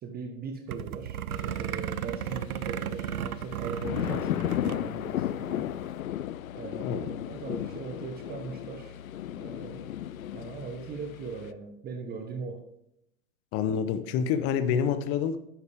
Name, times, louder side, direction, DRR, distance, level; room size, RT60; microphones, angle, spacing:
voice 1, 0.0-5.7 6.5-9.0 9.4-9.9 10.3-12.6, right 5 dB, 20° right, 5 dB, 1.1 m, -40 dB
sound 1, 0.7-4.8 5.1-5.2 5.5-5.8, right 10 dB, 85° right, 0.6 m, -35 dB
sound 2, 1.3-11.5, left 12 dB, 75° left, 0.5 m, -35 dB
voice 2, 13.5-15.4, left 7 dB, 35° left, 11 dB, 0.9 m, -27 dB
10.5 x 8.1 x 3.5 m, 0.79 s
hypercardioid pair, 105°, 42 cm